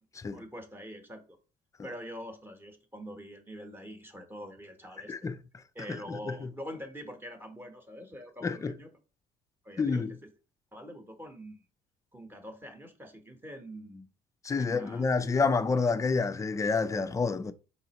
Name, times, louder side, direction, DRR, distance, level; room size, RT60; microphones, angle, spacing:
voice 1, 0.3-1.2 1.8-5.3 5.7-8.9 9.6-10.2 10.7-11.6 12.1-14.1 14.6-15.0, equal, 10° right, 1.0 m, -44 dB
voice 2, 5.9-6.5 8.4-8.7 9.8-10.1 14.4-17.5, left 4 dB, 20° left, 0.4 m, -28 dB
4.1 x 3.9 x 2.9 m
cardioid pair, 110°, 17 cm